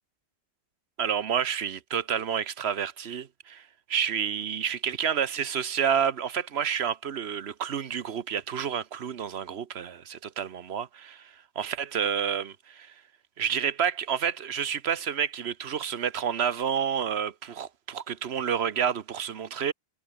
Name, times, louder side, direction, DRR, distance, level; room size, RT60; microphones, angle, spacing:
voice 1, 1.0-12.9 13.4-19.7, right 8 dB, 80° right, 1.2 m, -29 dB
omnidirectional pair, 1.1 m